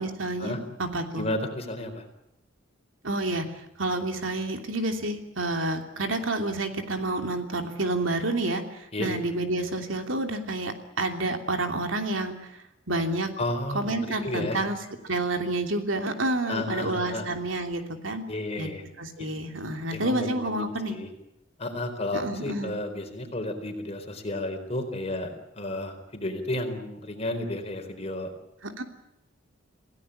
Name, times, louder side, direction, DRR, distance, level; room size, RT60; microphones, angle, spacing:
voice 1, 0.0-1.3 3.0-3.4 3.8-13.3 13.7-14.8 15.0-18.2 18.6-18.7 19.0-20.9 22.1-22.7 28.6-28.8, right 2 dB, 90° right, 5 dB, 3.0 m, -29 dB
voice 2, 1.1-2.0 8.9-9.1 13.4-14.6 16.5-17.3 18.3-18.8 19.2-19.3 19.9-21.1 21.6-28.3, left 1 dB, 35° left, 5 dB, 4.3 m, -32 dB
27.5 x 17.0 x 8.8 m, 0.87 s
head